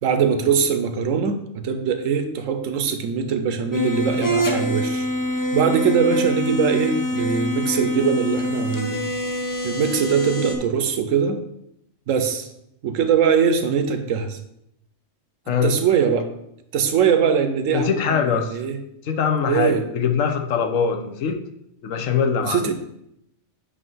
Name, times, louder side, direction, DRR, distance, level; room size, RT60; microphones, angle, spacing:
voice 1, 0.0-5.1 5.5-9.1 9.6-11.4 12.1-12.5 12.8-14.4 15.6-16.3 16.7-18.8 19.4-19.8 22.4-22.7, right 6 dB, 85° right, 8 dB, 1.1 m, -21 dB
sound 1, 3.7-10.6, equal, 20° left, 0.5 m, -25 dB
voice 2, 17.7-18.6 19.0-21.4 21.8-22.7, left 7 dB, 80° left, 5 dB, 1.1 m, -22 dB
8.3 x 2.8 x 5.5 m, 0.80 s
omnidirectional pair, 1.3 m